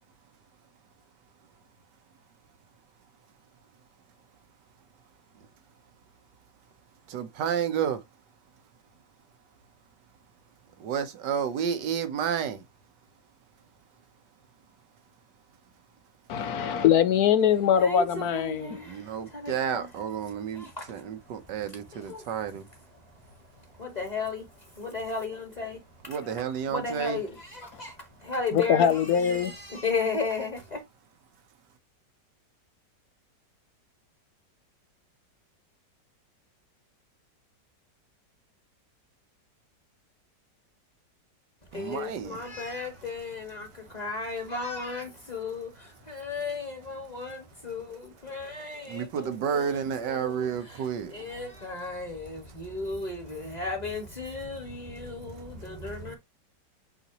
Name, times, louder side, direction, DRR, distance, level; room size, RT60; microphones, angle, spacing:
voice 1, 7.1-8.0 10.8-12.6 18.9-22.6 26.1-27.2 41.7-42.4 48.9-51.1, right 7 dB, 75° right, 1.6 m, -31 dB
voice 2, 16.3-18.8 28.5-29.5, left 8 dB, 65° left, 1.0 m, -22 dB
voice 3, 17.8-19.0 19.3-19.9 20.6-20.8 21.9-22.2 23.8-24.4 24.8-25.8 26.7-27.9 28.2-29.0 29.2-30.8 41.7-49.1 49.5-50.5 51.1-56.2, left 4 dB, 25° left, 1.8 m, -34 dB
8.0 x 4.1 x 2.9 m
omnidirectional pair, 1.9 m